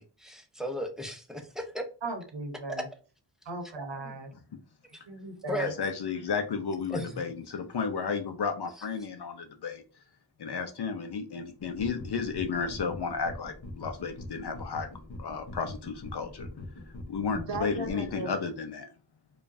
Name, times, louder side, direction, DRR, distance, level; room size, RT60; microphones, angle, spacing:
voice 1, 0.0-1.8 2.7-2.8 4.0-4.1 5.5-5.7 6.9-7.2 8.8-8.9, equal, ahead, 4 dB, 0.7 m, -35 dB
voice 2, 2.0-2.8 3.4-4.3 5.1-5.7 17.3-18.3, right 3 dB, 90° right, 2 dB, 1.0 m, -37 dB
voice 3, 5.6-9.8 10.4-14.9 15.2-16.5 17.1-18.9, left 5 dB, 65° left, 6 dB, 0.6 m, -33 dB
sound 1, 11.6-18.2, left 2 dB, 45° left, 0.9 m, -43 dB
5.0 x 2.4 x 2.6 m, 0.37 s
wide cardioid pair, 95°, 42 cm